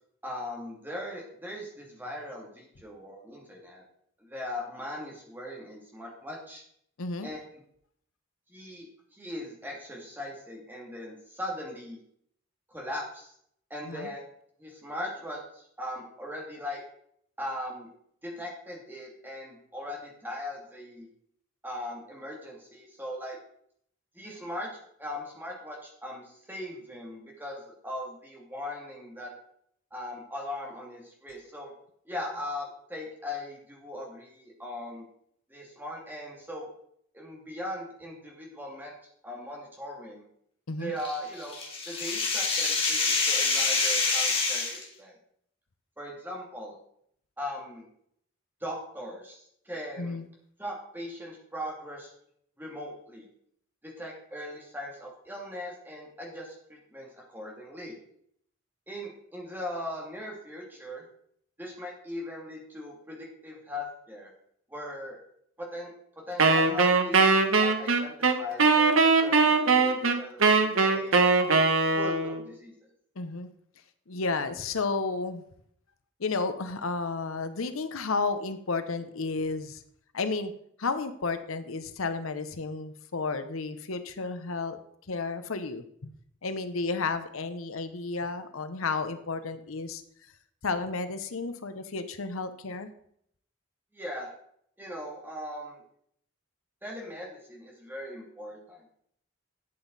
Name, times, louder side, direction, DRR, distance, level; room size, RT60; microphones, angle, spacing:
voice 1, 0.2-3.8 4.2-6.6 7.2-7.4 8.5-12.0 12.7-13.3 13.7-14.2 14.6-16.8 17.4-17.9 18.2-21.1 21.6-23.4 24.1-24.7 25.0-29.3 29.9-31.7 32.1-35.0 35.5-36.7 37.1-38.9 39.2-40.2 40.8-41.6 41.9-45.1 46.0-46.8 47.4-47.9 48.6-50.2 50.6-52.1 52.6-53.3 53.8-57.9 58.9-61.0 61.6-63.2 63.4-64.3 64.7-65.2 65.6-65.9 66.3-71.2 72.0-72.7 93.9-94.3 94.8-95.8 96.8-98.8, left 1 dB, 10° right, -2 dB, 2.6 m, -39 dB
voice 2, 7.0-7.3 13.8-14.1 40.7-40.9 50.0-50.3 73.2-73.5 74.1-75.4 76.2-79.8 80.1-80.5 80.8-84.8 85.1-86.1 86.4-90.0 90.6-92.9, left 4 dB, 90° left, 10 dB, 0.9 m, -32 dB
sound 1, 41.0-44.8, left 4 dB, 25° left, 2.1 m, -26 dB
Wind instrument woodwind instrument, 66.4-72.4, right 4 dB, 80° right, 1.2 m, -21 dB
12.0 x 8.1 x 4.1 m, 0.67 s
head